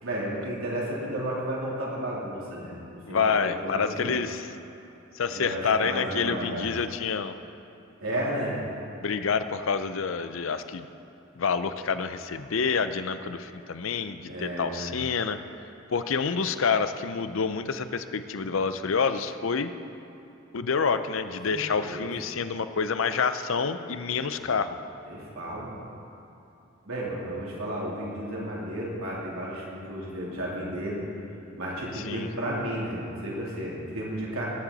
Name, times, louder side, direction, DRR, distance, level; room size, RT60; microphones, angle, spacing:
voice 1, 0.0-4.2 5.3-6.7 8.0-8.6 14.2-14.9 21.5-22.1 24.2-24.4 25.1-25.8 26.8-31.0 31.6-34.5, right 1 dB, 85° right, -6 dB, 3.4 m, -33 dB
voice 2, 3.1-4.6 5.1-7.3 9.0-10.9 11.4-15.4 15.9-19.7 20.5-24.8 31.9-32.3, left 5 dB, 70° left, 11 dB, 0.6 m, -28 dB
19.5 x 9.9 x 4.1 m, 2.9 s
head